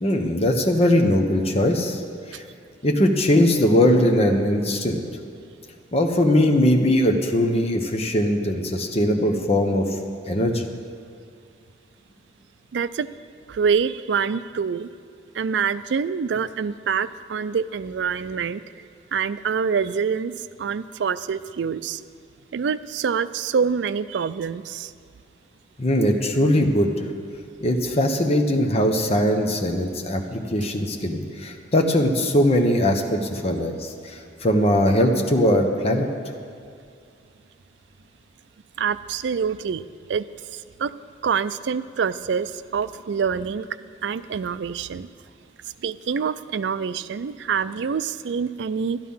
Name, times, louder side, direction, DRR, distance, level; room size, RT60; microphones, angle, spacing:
voice 1, 0.0-2.0 2.3-2.4 2.8-5.0 5.9-9.9 10.3-10.7 25.8-26.9 27.6-36.1, left 1 dB, 35° left, 3 dB, 1.0 m, -20 dB
voice 2, 12.7-13.1 13.5-14.9 15.3-22.0 22.5-24.9 38.8-39.8 40.1-40.3 40.5-40.9 41.2-43.7 44.0-45.1 45.8-49.0, right 6 dB, 75° right, 15 dB, 0.4 m, -26 dB
12.0 x 10.5 x 5.6 m, 2.3 s
head